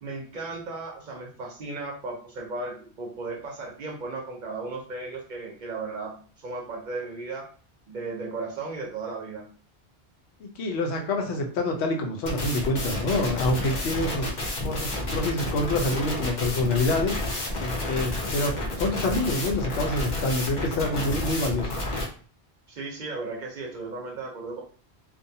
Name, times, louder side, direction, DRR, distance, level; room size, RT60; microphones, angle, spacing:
voice 1, 0.0-7.5 7.9-9.5 22.7-24.6, right 3 dB, 55° right, -1 dB, 0.6 m, -35 dB
voice 2, 10.4-14.3 14.6-17.2 17.6-21.7, left 2 dB, 85° left, 2 dB, 0.9 m, -27 dB
sound 1, 12.3-22.0, left 1 dB, 50° left, 0.7 m, -30 dB
2.5 x 2.2 x 2.7 m, 0.42 s
omnidirectional pair, 1.1 m